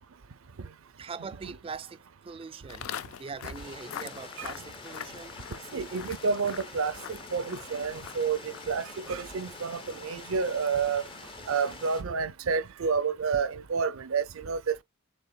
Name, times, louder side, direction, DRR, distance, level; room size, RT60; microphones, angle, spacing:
voice 1, 1.0-2.9 3.2-5.4, right 5 dB, 25° right, 0.3 m, -42 dB
Walk footsteps, 2.7-11.9, left 9 dB, 80° left, 0.4 m, -45 dB
sound 1, 3.5-12.0, left 3 dB, 25° left, 0.7 m, -46 dB
voice 2, 5.7-11.0 11.5-14.8, right 5 dB, 80° right, 0.5 m, -30 dB
6.9 x 3.4 x 2.2 m
head